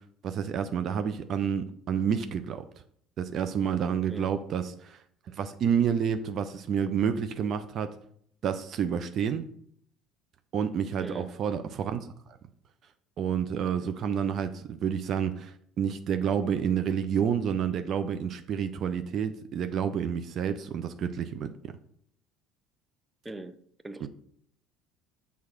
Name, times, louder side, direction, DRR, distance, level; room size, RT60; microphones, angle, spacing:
voice 1, 0.2-2.6 3.2-5.0 5.3-7.9 8.4-9.5 10.5-12.1 13.2-21.7 24.0-24.1, right 7 dB, 50° right, 0.5 m, -29 dB
voice 2, 23.2-23.6 23.8-24.1, right 2 dB, 10° right, 0.7 m, -40 dB
6.4 x 3.6 x 5.9 m
figure-of-eight pair, 60°, 0 cm